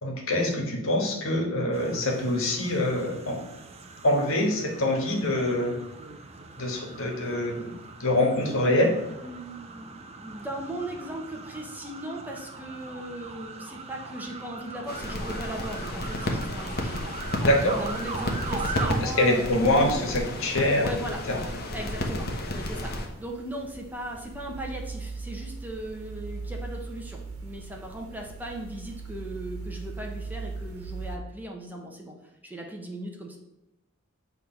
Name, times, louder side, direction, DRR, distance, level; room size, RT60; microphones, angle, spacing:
voice 1, 0.0-3.4 4.0-5.8 6.6-7.7 8.0-9.0 17.4-17.8 19.0-20.9 21.3-21.4, left 1 dB, 65° left, 1 dB, 1.7 m, -25 dB
sound 1, 1.7-19.0, right 4 dB, 30° right, 0.7 m, -40 dB
voice 2, 9.2-17.0 17.6-20.1 20.8-21.2 21.7-32.1 32.4-33.4, right 1 dB, 10° right, 0 dB, 1.0 m, -38 dB
sound 2, 14.9-23.1, left 1 dB, 45° left, 1.2 m, -32 dB
sound 3, 17.4-31.2, right 3 dB, 90° right, 1.4 m, -41 dB
8.5 x 3.4 x 5.8 m, 0.95 s
head